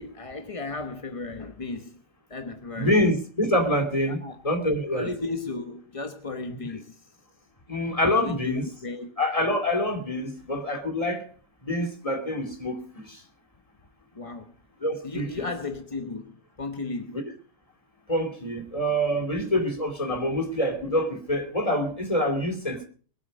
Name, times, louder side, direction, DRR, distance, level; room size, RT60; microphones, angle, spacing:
voice 1, 0.0-2.0 2.3-3.0 4.1-4.4 4.9-7.1 8.2-9.2 14.1-14.5 15.0-17.2, left 3 dB, 35° left, 0.5 m, -35 dB
voice 2, 2.8-5.1 7.7-8.7 9.2-11.3 11.6-13.2 14.8-15.3 17.1-17.2 18.1-22.9, left 1 dB, 15° left, 2.5 m, -26 dB
22.5 x 8.3 x 5.2 m
omnidirectional pair, 2.2 m